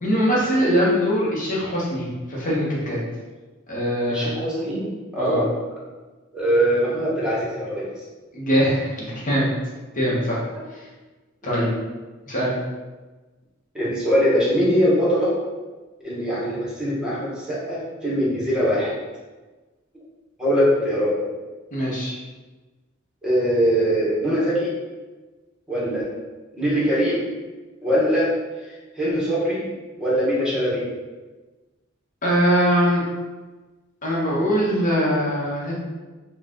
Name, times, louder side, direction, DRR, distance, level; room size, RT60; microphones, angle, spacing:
voice 1, 0.0-3.0 3.7-4.3 5.2-5.4 8.3-9.5 10.0-10.4 11.4-11.6 12.3-12.5 21.7-22.2 32.2-33.0 34.0-35.7, equal, 40° left, -5 dB, 1.1 m, -22 dB
voice 2, 4.1-4.8 5.1-5.5 6.3-7.9 11.4-11.7 13.7-15.3 16.0-18.9 20.4-21.2 23.2-24.7 25.7-26.1 26.5-27.3 27.8-28.3 29.0-29.7 30.0-30.8, equal, 5° right, -7 dB, 1.2 m, -22 dB
3.9 x 2.4 x 3.7 m, 1.2 s
head